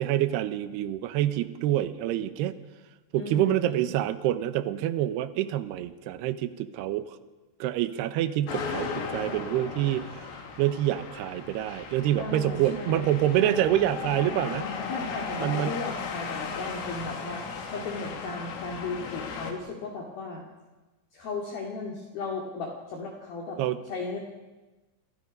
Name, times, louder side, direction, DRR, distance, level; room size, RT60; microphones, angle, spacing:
voice 1, 0.0-2.6 3.1-7.2 7.6-10.3 10.6-14.6 15.4-15.8 23.6-23.8, right 12 dB, 75° right, 11 dB, 2.5 m, -27 dB
voice 2, 3.1-3.9 12.2-13.1 13.4-13.9 14.9-20.4 21.1-23.6 23.9-24.2, left 3 dB, 55° left, -1 dB, 3.7 m, -36 dB
sound 1, 8.5-19.5, left 5 dB, 80° left, 5.3 m, -36 dB
28.5 x 28.0 x 5.4 m, 1.2 s
omnidirectional pair, 5.9 m